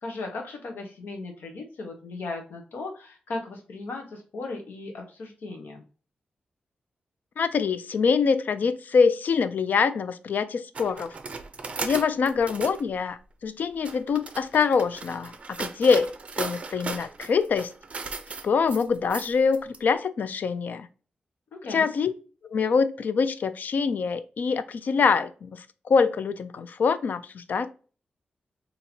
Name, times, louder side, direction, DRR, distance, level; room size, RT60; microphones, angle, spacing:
voice 1, 0.0-5.8 21.5-21.9, left 3 dB, 90° left, 1.0 m, -37 dB
voice 2, 7.4-11.1 11.8-13.2 13.4-17.7 18.4-20.9 21.6-22.1 22.5-27.7, left 5 dB, 60° left, 0.3 m, -24 dB
sound 1, 10.7-12.8 13.6-19.8, right 4 dB, 40° right, 0.4 m, -36 dB
4.2 x 2.8 x 2.7 m
wide cardioid pair, 145°, 3 cm